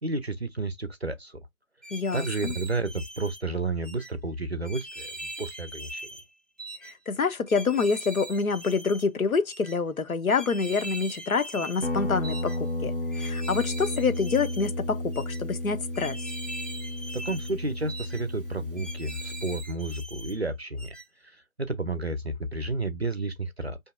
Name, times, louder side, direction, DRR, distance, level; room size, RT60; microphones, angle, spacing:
voice 1, 0.0-1.4 2.1-6.1 17.1-21.0 21.2-23.8, right 2 dB, 50° right, 0.5 m, -31 dB
sound 1, 1.8-3.4 3.8-4.1 4.6-6.3 6.6-6.9 7.5-9.1 9.5-9.7 10.3-11.9 12.2-12.6 13.1-14.7 15.1-15.4 15.9-17.6 17.9-18.2 18.8-20.4 20.8-21.1, right 1 dB, ahead, 0.3 m, -41 dB
voice 2, 1.9-2.5 6.8-16.2, left 5 dB, 85° left, 0.7 m, -27 dB
Guitar, 11.8-19.7, left 1 dB, 40° left, 0.6 m, -33 dB
4.2 x 2.6 x 2.3 m
figure-of-eight pair, 170°, 41 cm